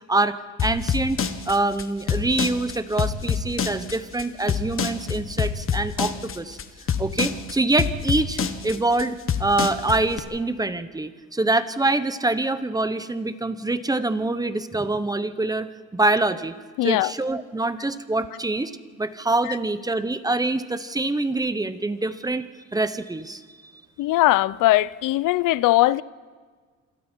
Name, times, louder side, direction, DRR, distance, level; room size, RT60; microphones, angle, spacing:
voice 1, 0.1-6.6 7.0-16.5 16.8-18.7 19.0-23.7, right 2 dB, 10° right, 1.0 m, -25 dB
sound 1, 0.6-10.2, left 7 dB, 45° left, 1.5 m, -26 dB
voice 2, 16.8-17.1 19.5-19.6 24.0-26.0, left 17 dB, 85° left, 0.6 m, -20 dB
27.5 x 27.0 x 4.6 m
cardioid pair, 115°, 32 cm